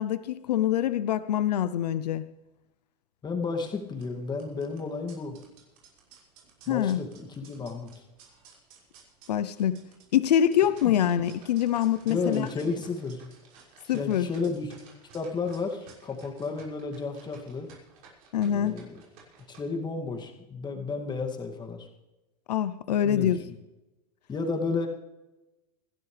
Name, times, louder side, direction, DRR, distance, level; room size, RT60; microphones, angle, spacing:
voice 1, 0.0-2.2 6.7-7.0 9.3-9.8 10.1-12.5 13.9-14.3 18.3-18.8 22.5-23.4, left 10 dB, 90° left, 13 dB, 0.7 m, -25 dB
voice 2, 3.2-5.4 6.7-8.0 12.0-13.3 13.9-14.7 15.1-17.7 18.4-19.0 19.5-21.9 23.0-23.6 24.3-24.9, left 4 dB, 20° left, 2 dB, 2.4 m, -32 dB
sound 1, 3.5-19.6, right 5 dB, 70° right, 6.0 m, -55 dB
26.5 x 12.0 x 3.4 m, 1.0 s
hypercardioid pair, 115°, 20 cm